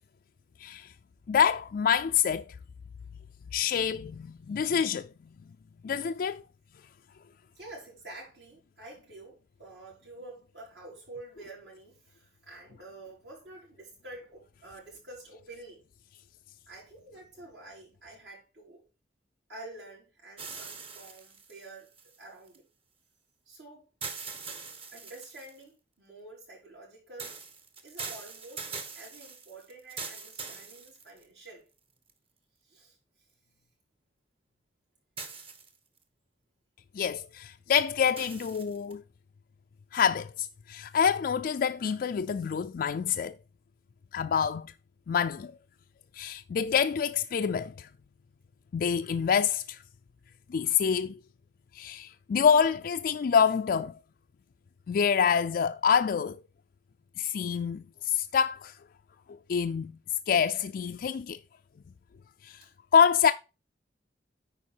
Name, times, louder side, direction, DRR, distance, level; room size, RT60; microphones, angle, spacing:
voice 1, 0.6-0.9 1.3-2.5 3.5-5.1 5.8-6.4 36.9-39.0 39.9-43.4 44.1-44.7 45.1-45.5 46.1-47.9 48.7-49.8 50.5-51.2 51.7-53.9 54.9-56.4 57.2-58.8 59.3-59.9 60.3-61.4 62.4-62.6 62.9-63.3, left 7 dB, 55° left, 0.3 m, -26 dB
voice 2, 7.5-15.8 16.7-18.8 19.5-21.9 22.2-22.7 23.4-23.9 24.9-27.3 27.8-28.7 28.9-31.6 32.6-33.0 33.4-33.5 62.6-62.7, right 2 dB, 65° right, 5.0 m, -48 dB
sound 1, 20.4-22.6 24.0-25.6 27.2-31.5 32.1-32.2 35.2-36.0 38.2-38.9, right 4 dB, 35° right, 1.2 m, -42 dB
9.7 x 4.7 x 4.5 m
head